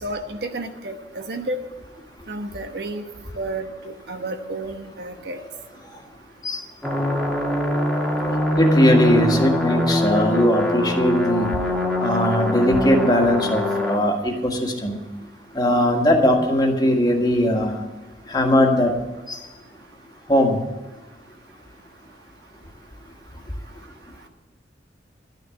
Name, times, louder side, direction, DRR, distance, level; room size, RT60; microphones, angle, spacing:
voice 1, 0.0-1.6 2.3-3.0 3.3-5.4, right 2 dB, 60° right, 6 dB, 1.1 m, -31 dB
sound 1, 6.8-14.0, left 1 dB, ahead, 1.9 m, -22 dB
voice 2, 8.6-11.5 12.0-15.0 15.5-17.8 18.3-18.9 19.3-19.4 20.3-20.6, left 1 dB, 25° left, 2 dB, 1.7 m, -19 dB
11.5 x 6.7 x 9.7 m, 1.2 s
head